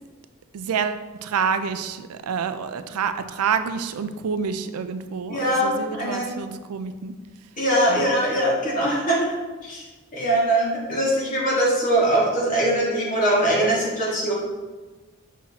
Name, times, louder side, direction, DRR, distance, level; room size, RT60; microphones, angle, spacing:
voice 1, 0.5-7.1 7.9-8.2 14.1-14.2, right 6 dB, 90° right, 10 dB, 0.4 m, -28 dB
voice 2, 5.3-6.3 7.6-9.3 9.6-9.8 10.1-14.3, right 1 dB, 35° left, -5 dB, 1.8 m, -22 dB
6.0 x 5.5 x 2.9 m, 1.3 s
head